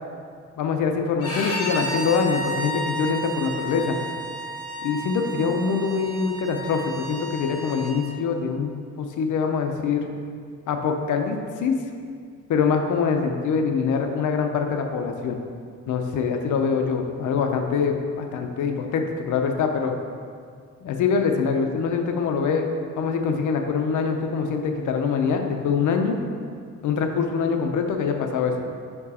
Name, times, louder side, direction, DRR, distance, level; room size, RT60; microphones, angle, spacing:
voice 1, 0.6-4.0 4.8-10.1 10.7-11.8 12.5-15.4 15.9-19.9 20.8-26.2 26.8-28.6, left 5 dB, 75° left, 4 dB, 0.6 m, -24 dB
Bowed string instrument, 1.2-7.9, equal, 50° left, 1.6 m, -32 dB
5.6 x 4.5 x 4.2 m, 2.2 s
cardioid pair, 140°, 30 cm